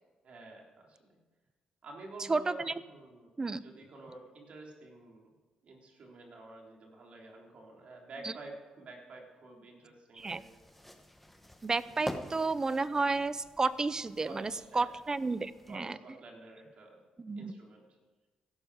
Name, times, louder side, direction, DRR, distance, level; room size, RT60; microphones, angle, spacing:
voice 1, 0.2-1.2 1.8-5.3 5.6-10.5 14.3-15.0 15.7-17.0 17.4-17.8, right 2 dB, 60° right, 0 dB, 3.6 m, -50 dB
voice 2, 2.3-2.7 3.4-3.6 8.2-8.3 10.2-10.4 11.6-16.0 17.2-17.5, right 3 dB, 30° right, 16 dB, 0.6 m, -32 dB
sound 1, 10.2-15.8, left 1 dB, 5° left, 1.3 m, -47 dB
15.5 x 12.0 x 4.9 m, 1.3 s
cardioid pair, 80°, 2 cm